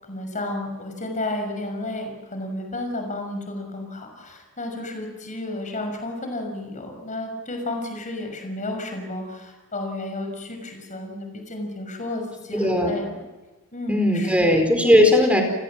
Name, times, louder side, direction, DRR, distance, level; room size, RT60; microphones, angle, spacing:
voice 1, 0.0-13.2 13.7-14.5, left 2 dB, 35° left, 4 dB, 6.3 m, -32 dB
voice 2, 12.5-12.9 13.9-15.4, left 1 dB, 5° right, 4 dB, 4.8 m, -18 dB
30.0 x 20.5 x 7.6 m, 1.2 s
head